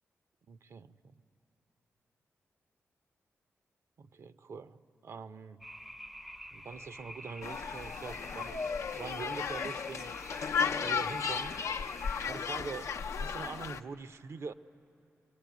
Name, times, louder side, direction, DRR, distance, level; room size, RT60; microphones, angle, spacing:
voice 1, 0.5-1.2 4.0-5.7 6.5-8.6 8.9-10.2 10.8-11.6 12.2-14.5, right 5 dB, 65° right, 0.6 m, -44 dB
sound 1, 5.6-12.3, equal, 5° right, 0.5 m, -48 dB
sound 2, 7.4-13.8, left 6 dB, 80° left, 0.6 m, -35 dB
26.5 x 22.5 x 9.4 m
cardioid pair, 85°, 5 cm